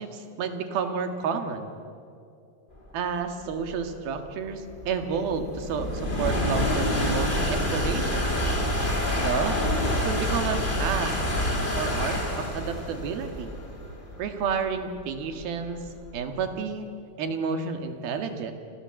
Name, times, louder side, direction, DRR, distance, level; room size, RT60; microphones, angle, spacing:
voice 1, 0.0-1.7 2.9-8.4 9.2-9.7 10.0-11.1 11.8-13.6 14.2-15.9 16.1-16.9 17.2-18.5, right 6 dB, 80° right, 6 dB, 3.8 m, -30 dB
sound 1, 3.1-16.4, left 1 dB, 15° left, 3.1 m, -28 dB
30.0 x 23.5 x 7.8 m, 2.5 s
omnidirectional pair, 4.2 m